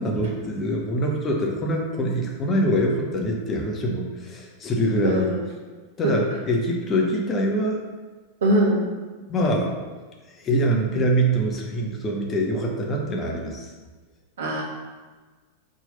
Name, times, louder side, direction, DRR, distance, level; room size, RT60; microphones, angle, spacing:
voice 1, 0.0-5.3 6.0-7.8 9.3-9.7 10.4-13.7, equal, 25° left, 0 dB, 1.0 m, -24 dB
voice 2, 5.0-5.4 6.0-6.2 8.4-8.8 14.4-14.6, right 1 dB, 60° right, -2 dB, 1.4 m, -21 dB
4.5 x 3.9 x 5.4 m, 1.4 s
figure-of-eight pair, 90°, 0 cm